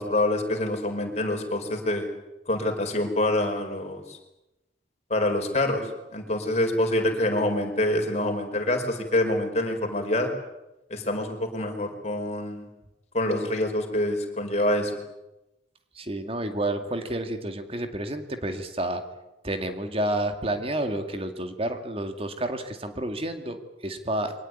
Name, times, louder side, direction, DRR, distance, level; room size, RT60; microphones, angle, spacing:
voice 1, 0.0-2.1 2.5-4.2 5.1-10.3 10.9-12.7 13.1-14.9, left 1 dB, 35° left, 4 dB, 4.7 m, -26 dB
voice 2, 15.9-19.0 19.4-24.3, right 1 dB, 30° right, 7 dB, 2.2 m, -30 dB
23.5 x 19.5 x 9.7 m, 0.96 s
head